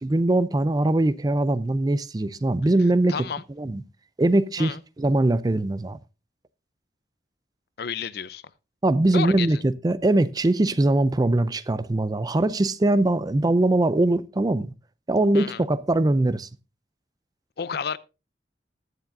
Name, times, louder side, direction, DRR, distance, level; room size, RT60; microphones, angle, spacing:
voice 1, 0.0-3.1 3.6-3.8 4.2-6.0 8.8-14.7 15.1-16.5, right 2 dB, 20° right, 0.4 m, -22 dB
voice 2, 3.1-3.4 4.6-4.8 7.8-8.4 9.1-9.6 15.3-15.7 17.6-18.0, left 6 dB, 60° left, 0.5 m, -31 dB
20.0 x 7.2 x 2.6 m
head